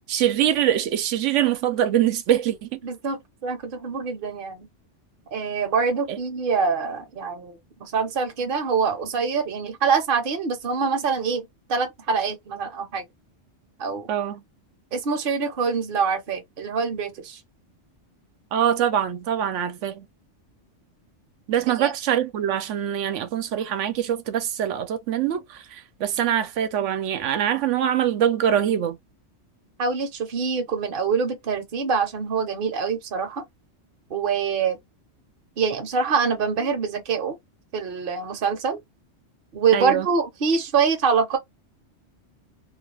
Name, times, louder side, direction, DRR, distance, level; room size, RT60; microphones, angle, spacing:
voice 1, 0.1-2.8 6.1-6.2 14.1-14.4 18.5-20.1 21.5-29.0 39.7-40.1, right 10 dB, 90° right, 0.9 m, -23 dB
voice 2, 2.8-4.7 5.3-13.0 13.8-14.1 14.9-17.4 21.8-21.9 29.8-33.4 34.1-34.8 35.6-37.4 37.7-38.8 39.5-41.4, right 5 dB, 55° right, 0.8 m, -25 dB
2.4 x 2.3 x 3.2 m
omnidirectional pair, 1.2 m